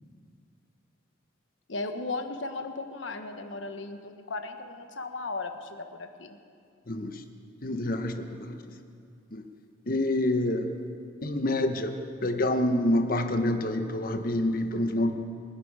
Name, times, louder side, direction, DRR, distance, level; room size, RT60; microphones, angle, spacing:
voice 1, 1.7-6.4, left 3 dB, 70° left, 7 dB, 1.2 m, -36 dB
voice 2, 6.9-7.2 7.6-8.6 9.3-9.4 9.9-10.7 11.2-11.9 12.2-15.1, left 1 dB, 45° left, 7 dB, 1.1 m, -27 dB
29.0 x 10.0 x 4.9 m, 2.4 s
head